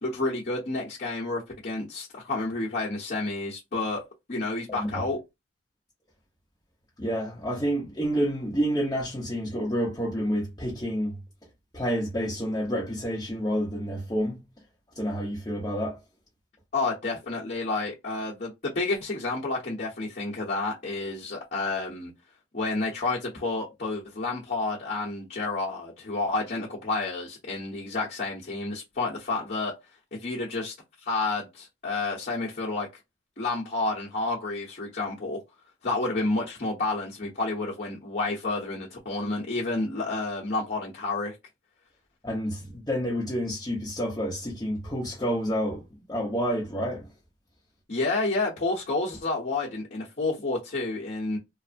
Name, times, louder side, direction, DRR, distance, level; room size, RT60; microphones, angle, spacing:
voice 1, 0.0-5.2 16.7-22.1 22.5-29.7 30.1-30.7 31.1-32.9 33.4-35.4 35.8-41.3 47.9-51.4, left 3 dB, 50° left, 0.9 m, -30 dB
voice 2, 7.0-11.2 11.7-14.5 14.9-16.0 42.2-47.1, equal, 20° left, 0.7 m, -29 dB
3.1 x 2.0 x 2.5 m
head